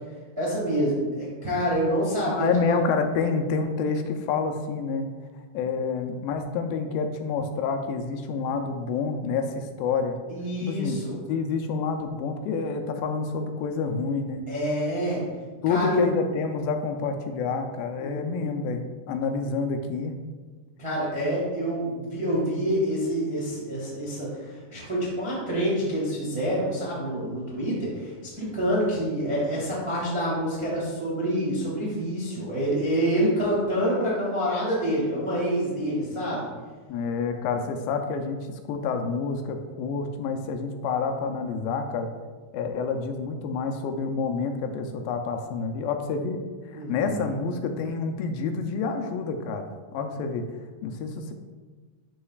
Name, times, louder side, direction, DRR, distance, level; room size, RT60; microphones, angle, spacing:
voice 1, 0.4-2.8 10.3-11.1 14.5-15.2 15.7-16.0 18.0-18.5 20.8-36.5 46.7-47.3, equal, 40° right, -7 dB, 0.4 m, -27 dB
voice 2, 2.3-5.1 5.5-10.2 10.6-14.5 15.6-20.1 36.9-42.1 42.5-46.4 46.7-50.5 50.8-51.3, left 5 dB, 80° left, 6 dB, 2.2 m, -28 dB
11.5 x 4.1 x 2.4 m, 1.4 s
omnidirectional pair, 4.2 m